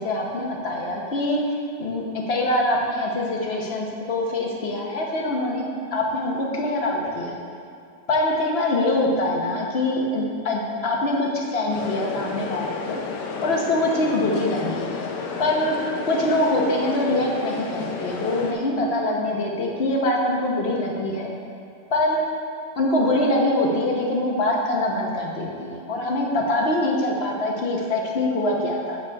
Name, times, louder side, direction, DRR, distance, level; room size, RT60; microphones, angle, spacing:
voice 1, 0.0-1.4 1.8-5.6 5.9-7.4 8.1-13.0 13.4-14.9 15.4-15.7 16.1-21.3 21.9-22.2 22.8-29.0, left 1 dB, 45° left, -1 dB, 1.1 m, -24 dB
sound 1, 11.7-18.5, left 4 dB, 80° left, 1.3 m, -32 dB
7.2 x 5.7 x 4.6 m, 2.4 s
omnidirectional pair, 1.8 m